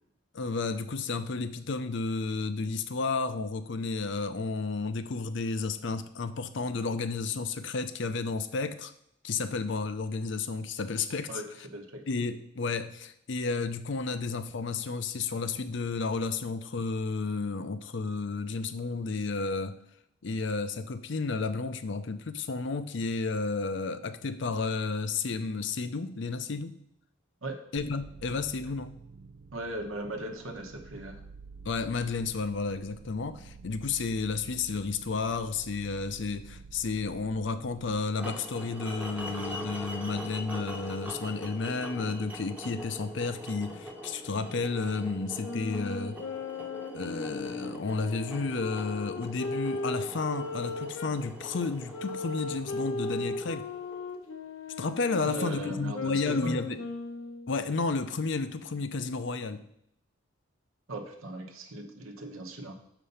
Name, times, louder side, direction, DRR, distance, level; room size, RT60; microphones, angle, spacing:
voice 1, 0.3-8.9 9.2-11.4 12.1-19.8 20.2-26.8 27.7-29.0 31.6-46.2 46.9-53.7 54.8-56.8 57.5-59.6, left 4 dB, 60° left, 11 dB, 0.5 m, -32 dB
voice 2, 11.7-12.0 27.4-27.6 29.5-31.2 55.2-56.6 60.9-62.8, right 1 dB, 80° right, 3 dB, 1.0 m, -38 dB
sound 1, 27.8-38.0, right 4 dB, 55° right, 0.4 m, -49 dB
sound 2, 38.2-54.3, equal, 5° right, 0.8 m, -43 dB
sound 3, 45.4-51.2 51.9-57.5, left 3 dB, 85° left, 0.9 m, -37 dB
6.7 x 5.1 x 5.6 m, 0.73 s
head